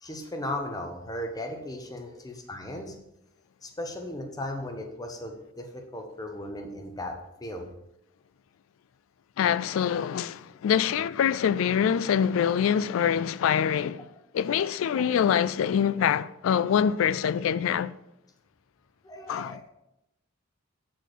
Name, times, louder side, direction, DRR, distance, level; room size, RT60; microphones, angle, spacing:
voice 1, 0.0-2.9 3.6-7.7 9.6-9.7 15.0-15.1 19.0-19.7, left 1 dB, 20° left, 0.8 m, -36 dB
voice 2, 9.4-14.1 14.3-17.9 19.3-19.6, left 8 dB, 70° left, 0.3 m, -25 dB
8.0 x 4.6 x 4.5 m
head